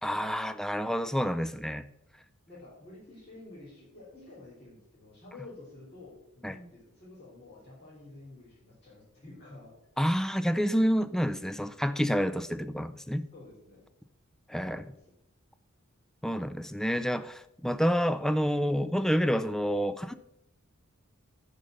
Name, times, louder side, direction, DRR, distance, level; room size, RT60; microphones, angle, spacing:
voice 1, 0.0-1.9 6.4-6.5 10.0-13.2 14.5-14.8 16.2-20.1, equal, ahead, 12 dB, 0.4 m, -28 dB
voice 2, 2.5-9.7 13.3-13.8 14.6-15.0, left 2 dB, 30° left, -11 dB, 3.8 m, -50 dB
10.5 x 5.2 x 6.6 m, 0.80 s
head